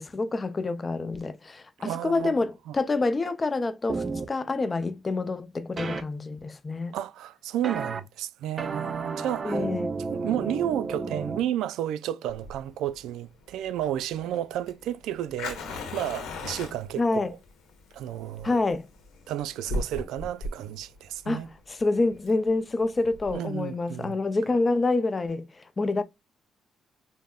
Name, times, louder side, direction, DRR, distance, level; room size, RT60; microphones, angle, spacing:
voice 1, 0.0-6.9 9.4-10.0 17.0-17.3 18.4-18.9 21.3-26.0, left 3 dB, 30° left, 0.5 m, -27 dB
voice 2, 1.8-2.3 2.7-2.8 6.9-9.7 10.1-15.6 15.9-17.4 17.9-18.6 19.3-21.5 23.3-24.2, right 11 dB, 90° right, 0.3 m, -32 dB
sound 1, 3.9-4.3 5.8-6.0 7.6-8.0 8.6-11.4, right 4 dB, 40° right, 0.5 m, -31 dB
Fire, 12.3-23.4, left 2 dB, 90° left, 1.3 m, -38 dB
5.3 x 2.1 x 2.3 m
cardioid pair, 90°, 0 cm